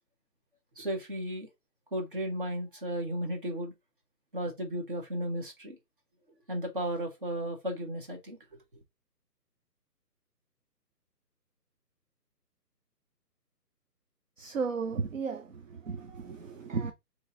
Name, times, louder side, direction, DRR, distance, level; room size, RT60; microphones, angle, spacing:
voice 1, 0.8-1.5 1.9-3.7 4.3-5.8 6.5-8.4, right 1 dB, 30° right, 1.1 m, -34 dB
voice 2, 14.4-16.9, right 5 dB, 50° right, 0.6 m, -34 dB
4.0 x 3.0 x 3.7 m
hypercardioid pair, 170°, 50 cm